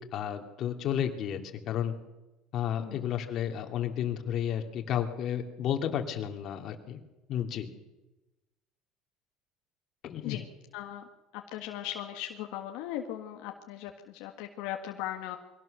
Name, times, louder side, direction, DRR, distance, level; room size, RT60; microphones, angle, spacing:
voice 1, 0.1-1.4 1.7-1.9 2.5-7.0 7.3-7.7 10.0-10.4, left 9 dB, 50° left, 5 dB, 2.7 m, -32 dB
voice 2, 2.8-3.1 10.2-10.5 10.7-11.1 11.3-15.4, left 12 dB, 80° left, 3 dB, 1.7 m, -38 dB
22.5 x 17.5 x 6.8 m, 1.0 s
cardioid pair, 125°, 0 cm